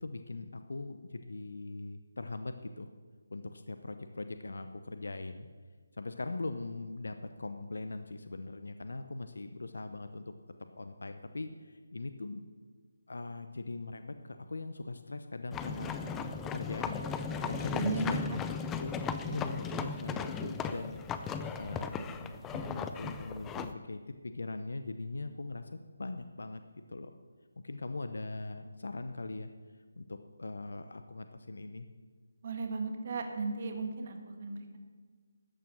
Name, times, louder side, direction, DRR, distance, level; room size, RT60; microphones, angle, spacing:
voice 1, 0.0-2.9 3.3-5.5 6.0-10.3 10.8-12.4 13.1-17.0 17.4-18.2 18.8-19.0 19.2-21.3 21.5-25.7 26.0-26.6 26.9-27.2 27.6-29.5 30.0-31.9, left 2 dB, 75° left, 9 dB, 0.7 m, -41 dB
sound 1, 15.5-23.7, left 6 dB, 10° left, 0.5 m, -37 dB
voice 2, 17.4-18.2 32.4-34.8, right 4 dB, 45° right, 4 dB, 1.7 m, -35 dB
13.5 x 9.0 x 6.1 m, 1.5 s
figure-of-eight pair, 155°, 0 cm